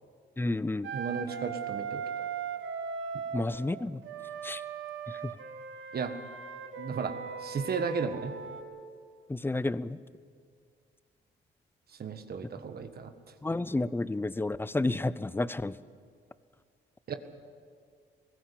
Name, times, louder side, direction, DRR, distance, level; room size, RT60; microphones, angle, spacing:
voice 1, 0.4-0.9 3.3-4.0 4.4-4.6 9.3-10.0 13.4-15.7, left 2 dB, 10° left, 17 dB, 0.6 m, -30 dB
Wind instrument woodwind instrument, 0.8-3.4 4.0-8.6, right 6 dB, 80° right, 1.9 m, -38 dB
voice 2, 0.9-2.3 5.9-6.2 6.8-7.1 7.4-8.3 12.0-13.1 17.1-17.2, right 6 dB, 50° right, 8 dB, 1.6 m, -34 dB
21.0 x 16.0 x 8.6 m, 2.1 s
cardioid pair, 90°, 20 cm